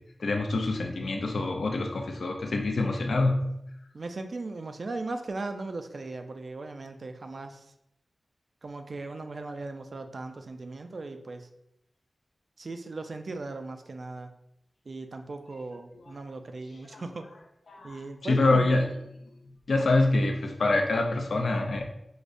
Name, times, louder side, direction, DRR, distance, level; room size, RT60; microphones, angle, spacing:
voice 1, 0.2-3.5 16.9-17.0 17.7-18.9 19.7-21.8, left 2 dB, 85° left, 3 dB, 0.4 m, -26 dB
voice 2, 3.9-7.7 8.6-11.5 12.6-14.3 14.9-17.3 17.8-18.7, right 3 dB, 55° right, 7 dB, 0.3 m, -38 dB
4.8 x 2.1 x 2.5 m, 0.80 s
wide cardioid pair, 110°, 0 cm